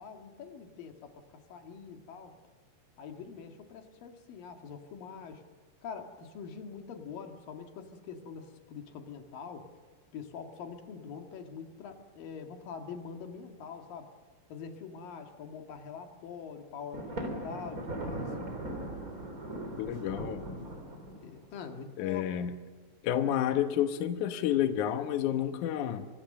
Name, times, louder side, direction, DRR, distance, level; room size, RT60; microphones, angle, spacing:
voice 1, 0.0-2.4 3.0-5.4 5.8-9.7 10.1-14.2 14.5-18.4 21.2-22.5, left 6 dB, 60° left, 5 dB, 3.3 m, -44 dB
Thunder, 16.9-21.5, right 1 dB, 20° right, 3.4 m, -39 dB
voice 2, 19.8-20.5 22.0-22.5 23.0-26.1, left 10 dB, 75° left, 8 dB, 1.8 m, -30 dB
26.5 x 23.5 x 6.7 m, 1.5 s
omnidirectional pair, 5.1 m